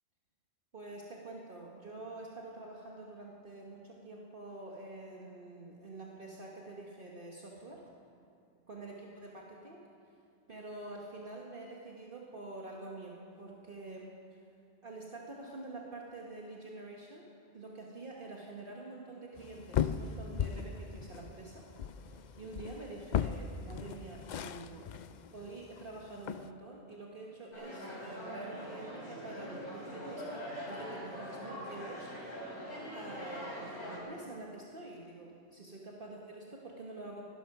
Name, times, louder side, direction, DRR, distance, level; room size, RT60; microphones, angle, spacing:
voice 1, 0.7-7.8 8.7-9.8 10.5-14.4 14.8-17.3 17.5-21.6 22.0-25.1 25.3-32.1 32.9-37.3, right 2 dB, 50° right, -2 dB, 1.5 m, -47 dB
sound 1, 19.4-26.5, left 8 dB, 55° left, 0.5 m, -38 dB
sound 2, 27.5-34.0, equal, 75° left, 4.2 m, -43 dB
18.0 x 11.5 x 5.9 m, 2.5 s
omnidirectional pair, 1.2 m